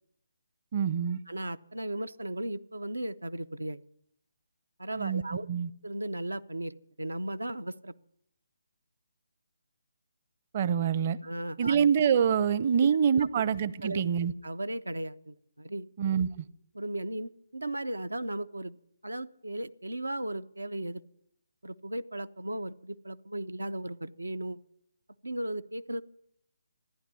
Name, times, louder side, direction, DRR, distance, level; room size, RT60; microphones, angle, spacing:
voice 1, 0.7-1.2 4.9-5.2 5.5-5.7 10.5-11.2 11.6-14.3 16.0-16.4, right 7 dB, 40° right, 0.7 m, -26 dB
voice 2, 1.3-3.8 4.8-5.5 5.8-7.9 11.2-11.8 13.2-13.3 13.8-14.0 14.4-15.9 16.7-18.8 19.0-21.0 21.6-24.6 25.2-26.0, right 1 dB, 90° right, 0.6 m, -36 dB
14.5 x 10.0 x 9.7 m
figure-of-eight pair, 150°, 0 cm